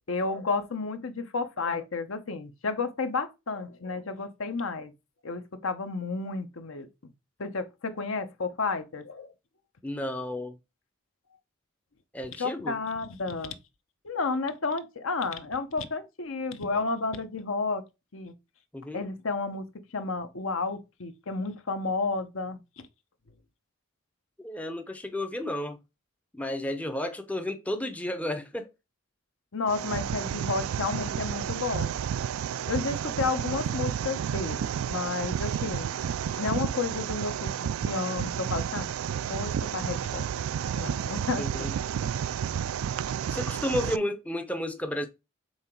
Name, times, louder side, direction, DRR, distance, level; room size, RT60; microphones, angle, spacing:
voice 1, 0.1-4.9 5.2-6.9 7.4-9.3 12.4-13.6 14.0-17.8 18.1-18.3 18.9-19.7 19.9-22.6 29.5-31.9 32.7-35.9 36.4-38.9 39.2-40.3 40.8-41.7, left 4 dB, 70° left, 0.9 m, -31 dB
voice 2, 9.8-10.6 12.1-12.8 18.7-19.1 24.4-25.8 26.3-28.7 41.4-41.7 43.3-45.1, left 1 dB, 5° left, 0.5 m, -32 dB
sound 1, 29.7-44.0, right 8 dB, 75° right, 0.3 m, -31 dB
5.7 x 3.8 x 4.4 m
head